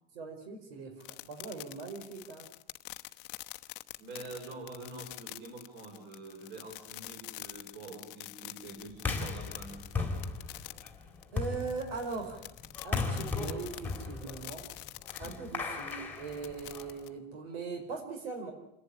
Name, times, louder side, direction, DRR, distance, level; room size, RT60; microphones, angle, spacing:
voice 1, 0.1-2.5 11.3-12.5 12.8-14.6 15.2-18.5, right 4 dB, 75° right, 4 dB, 5.1 m, -40 dB
sound 1, 1.0-17.1, left 19 dB, 60° left, 0.9 m, -46 dB
voice 2, 4.0-10.2, right 2 dB, 35° right, 3 dB, 4.6 m, -46 dB
sound 2, 9.0-17.1, left 4 dB, 5° left, 2.2 m, -37 dB
28.0 x 11.5 x 10.0 m, 0.84 s
supercardioid pair, 170°, 30 cm